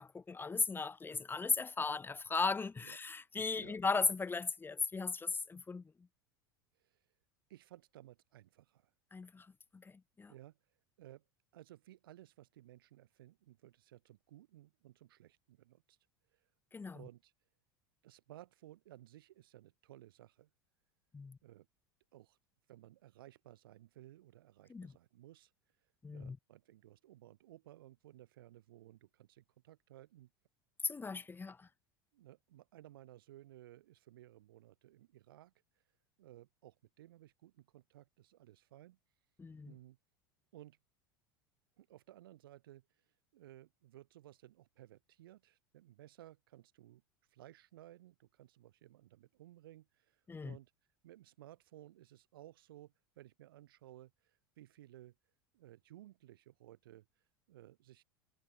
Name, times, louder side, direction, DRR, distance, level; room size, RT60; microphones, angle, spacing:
voice 1, 0.0-5.8 9.1-9.5 9.7-9.9 10.2-10.3 16.7-17.0 21.1-21.4 24.7-24.9 26.0-26.4 30.8-31.7 39.4-39.7 50.3-50.6, left 4 dB, 15° left, 1.7 m, -37 dB
voice 2, 6.7-7.1 7.5-8.9 10.3-10.6 11.0-11.2 11.5-16.0 16.3-16.5 16.9-17.3 18.0-20.5 21.4-21.7 22.1-22.4 22.7-25.5 25.8-30.3 32.1-35.8 36.2-39.0 39.6-40.0 40.5-40.8 41.8-50.7 51.0-55.1 55.5-58.0, right 14 dB, 75° right, 4.0 m, -58 dB
hypercardioid pair, 85°, 12 cm